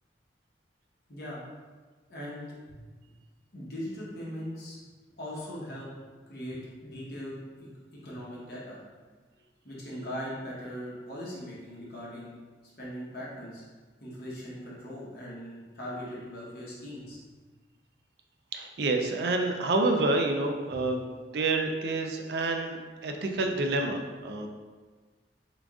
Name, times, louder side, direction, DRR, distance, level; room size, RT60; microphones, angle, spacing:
voice 1, 1.1-1.4 2.1-2.8 3.5-4.8 5.2-5.9 6.3-7.7 8.0-8.8 9.6-12.3 12.8-13.6 14.0-17.2 20.7-20.8, equal, 55° left, -6 dB, 1.0 m, -40 dB
voice 2, 18.5-21.0 21.3-22.8 23.0-24.5, right 2 dB, 65° right, 4 dB, 0.4 m, -28 dB
3.8 x 3.4 x 2.4 m, 1.4 s
head